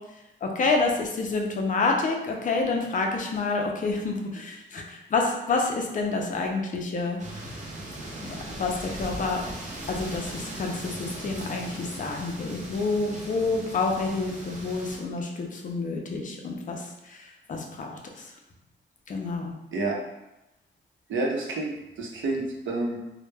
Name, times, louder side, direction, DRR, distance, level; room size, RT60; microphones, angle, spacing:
voice 1, 0.4-7.2 8.2-9.4 9.9-17.2 17.5-18.0 19.1-19.5, left 3 dB, 45° left, 1 dB, 0.4 m, -28 dB
sound 1, 7.2-15.0, right 1 dB, 40° right, 0.5 m, -38 dB
voice 2, 21.1-21.7 22.0-23.0, right 2 dB, 90° right, -1 dB, 0.6 m, -28 dB
2.1 x 2.1 x 3.2 m, 0.94 s
wide cardioid pair, 145°, 19 cm